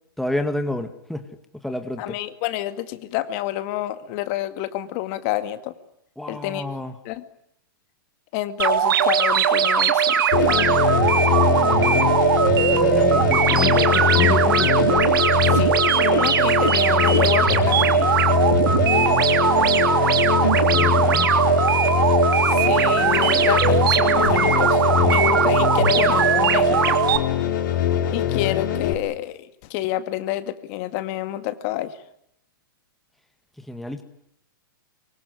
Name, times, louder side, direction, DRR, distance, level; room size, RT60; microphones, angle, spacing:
voice 1, 0.2-2.2 6.2-6.9 11.5-12.2 12.7-14.7 18.6-19.4 20.5-21.3 33.6-34.0, left 1 dB, ahead, 6 dB, 2.0 m, -30 dB
voice 2, 2.0-5.7 6.3-6.6 7.0-7.2 8.3-10.9 15.5-18.2 22.5-27.0 28.1-32.0, left 14 dB, 40° left, 10 dB, 2.2 m, -28 dB
sound 1, 8.6-27.2, right 8 dB, 75° right, 3.3 m, -19 dB
sound 2, 10.3-28.9, left 10 dB, 60° left, 5.0 m, -22 dB
24.5 x 24.0 x 9.6 m, 0.77 s
hypercardioid pair, 140°, 12 cm